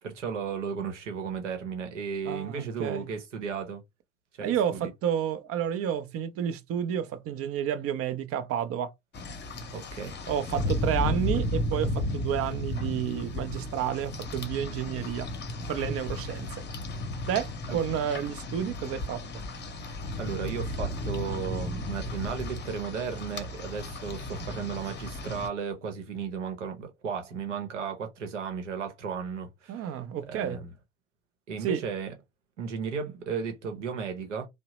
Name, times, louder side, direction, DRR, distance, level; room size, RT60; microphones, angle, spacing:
voice 1, 0.0-3.8 4.4-4.9 9.7-10.2 17.7-17.8 20.2-29.9 30.3-30.7 31.5-32.1 32.6-34.5, right 6 dB, 85° right, 0.8 m, -35 dB
voice 2, 2.3-3.0 4.4-8.9 10.3-15.3 15.7-16.6 17.3-19.2 24.3-24.5 29.7-30.6 31.6-31.8, right 9 dB, 40° right, 0.5 m, -30 dB
Rain, 9.1-25.5, left 1 dB, 30° left, 0.8 m, -34 dB
2.7 x 2.0 x 2.9 m
hypercardioid pair, 65°, 35 cm